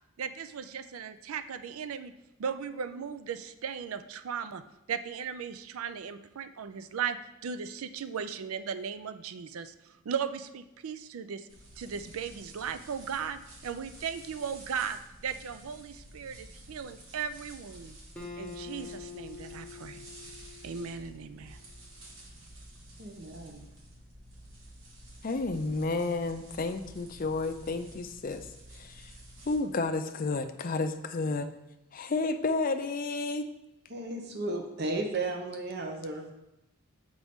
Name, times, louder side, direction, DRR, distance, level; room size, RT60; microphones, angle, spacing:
voice 1, 0.2-2.1 2.4-4.6 4.9-7.2 7.4-11.5 11.8-18.0 18.4-20.0 20.6-21.6, right 7 dB, 85° right, 11 dB, 0.4 m, -37 dB
sound 1, 11.5-29.5, right 1 dB, 65° right, 1.5 m, -51 dB
Acoustic guitar, 18.2-21.6, left 5 dB, 5° left, 0.9 m, -45 dB
voice 2, 23.0-23.6 33.9-36.3, right 2 dB, 50° right, 3 dB, 0.7 m, -34 dB
voice 3, 25.2-28.5 28.7-29.1 29.5-31.5 31.9-33.5, left 3 dB, 40° left, 8 dB, 0.4 m, -31 dB
7.1 x 5.1 x 3.5 m, 0.92 s
head